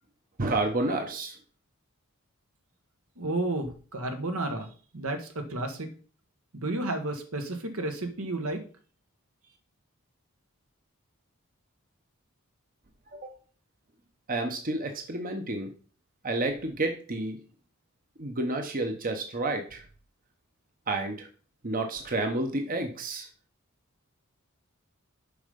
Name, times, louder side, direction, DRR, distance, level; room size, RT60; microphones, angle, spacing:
voice 1, 0.4-1.3 13.1-13.3 14.3-15.7 16.2-17.4 18.2-19.8 20.9-21.3 21.6-23.3, right 2 dB, 40° right, 4 dB, 1.0 m, -30 dB
voice 2, 3.2-5.9 6.5-8.6, right 2 dB, 80° right, 5 dB, 1.5 m, -32 dB
6.9 x 5.6 x 5.3 m, 0.40 s
head